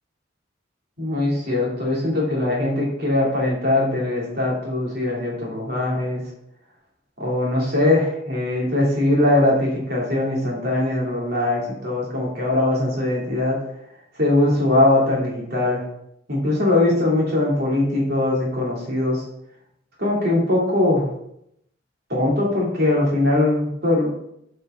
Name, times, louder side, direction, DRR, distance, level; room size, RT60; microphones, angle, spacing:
voice 1, 1.0-6.2 7.2-13.6 14.2-15.8 16.3-19.2 20.0-21.1 22.1-24.2, left 2 dB, 55° right, -4 dB, 3.3 m, -21 dB
10.5 x 5.6 x 3.9 m, 0.76 s
head